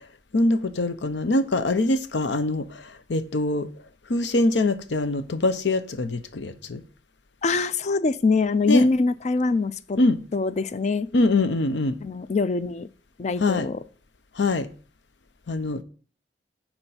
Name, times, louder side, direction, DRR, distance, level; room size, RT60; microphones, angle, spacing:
voice 1, 0.3-3.7 4.1-6.8 8.7-8.9 10.0-10.2 11.1-12.0 13.4-13.7 14.4-14.7 15.5-15.8, left 2 dB, 85° left, 0.7 m, -23 dB
voice 2, 7.4-10.0 10.3-11.1 12.0-12.9 13.2-13.8, left 3 dB, 40° left, 0.4 m, -23 dB
6.7 x 4.4 x 5.6 m
head